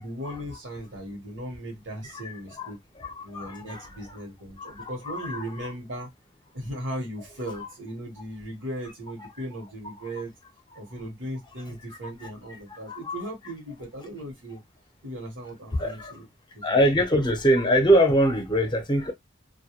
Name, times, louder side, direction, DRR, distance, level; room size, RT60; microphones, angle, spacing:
voice 1, 0.0-2.8 3.2-6.1 6.5-10.3 10.7-14.6 15.0-16.3 16.5-16.8, right 1 dB, 75° right, 1.0 m, -37 dB
voice 2, 2.6-4.2 4.6-5.7 12.2-12.3 12.7-13.2 15.8-16.1 16.6-19.1, equal, 25° left, 0.7 m, -24 dB
2.2 x 2.2 x 2.8 m
head